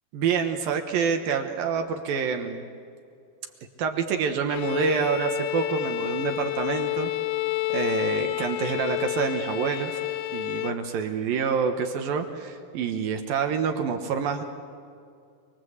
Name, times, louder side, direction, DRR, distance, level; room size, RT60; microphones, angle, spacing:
voice 1, 0.1-2.7 3.8-7.1 7.7-10.0 10.3-14.4, right 6 dB, 70° right, 5 dB, 2.8 m, -27 dB
Bowed string instrument, 4.5-10.9, left 16 dB, 80° left, 2.7 m, -29 dB
28.5 x 21.5 x 8.1 m, 2.4 s
omnidirectional pair, 4.6 m